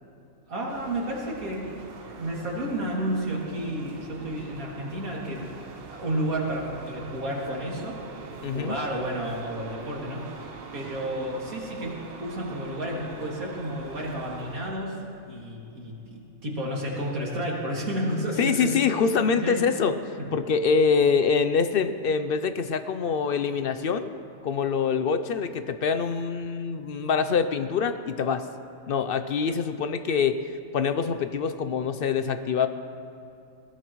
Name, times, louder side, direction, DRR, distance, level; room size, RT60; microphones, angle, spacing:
voice 1, 0.5-1.7 2.1-5.5 5.9-8.0 8.5-15.0 15.3-18.7 19.4-19.7 20.2-20.3, right 1 dB, 75° right, -3 dB, 2.9 m, -31 dB
sound 1, 0.7-14.7, right 4 dB, 50° right, 0.9 m, -43 dB
voice 2, 8.4-8.8 18.4-20.0 20.3-24.1 24.4-28.5 28.9-30.4 30.7-32.7, left 6 dB, 65° left, 10 dB, 0.6 m, -25 dB
21.5 x 17.5 x 3.1 m, 2.6 s
omnidirectional pair, 1.5 m